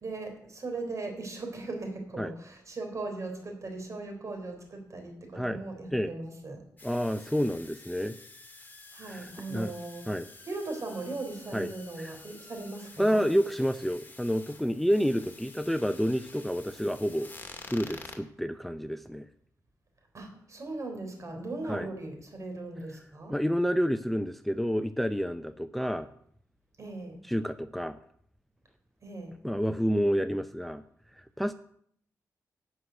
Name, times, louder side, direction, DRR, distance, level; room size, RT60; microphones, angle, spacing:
voice 1, 0.0-6.7 8.9-10.1 10.4-13.2 20.1-23.3 26.8-27.2 29.0-29.4, right 2 dB, 50° right, 4 dB, 3.7 m, -38 dB
sound 1, 6.8-18.2, left 3 dB, 30° left, 2.2 m, -49 dB
voice 2, 6.8-8.2 9.0-9.7 10.1-10.3 11.5-11.7 12.0-12.1 13.0-17.3 17.6-19.3 21.7-21.9 23.3-26.1 27.2-28.0 29.4-30.8 31.2-31.5, equal, ahead, 11 dB, 0.5 m, -29 dB
11.5 x 6.4 x 8.1 m, 0.66 s
cardioid pair, 80°, 7 cm